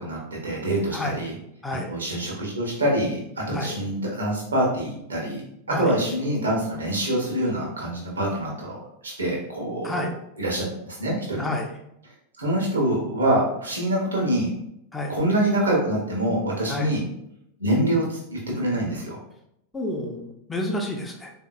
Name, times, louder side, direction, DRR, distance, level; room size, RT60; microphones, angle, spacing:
voice 1, 0.0-1.3 1.7-10.1 10.4-11.4 12.4-14.5 15.1-17.0 17.6-19.2, right 1 dB, 70° right, -2 dB, 1.1 m, -25 dB
voice 2, 11.4-11.7 14.9-15.2 16.7-16.9 19.7-21.3, left 1 dB, 10° left, 1 dB, 0.6 m, -29 dB
3.8 x 2.7 x 2.4 m, 0.77 s
figure-of-eight pair, 90°, 0 cm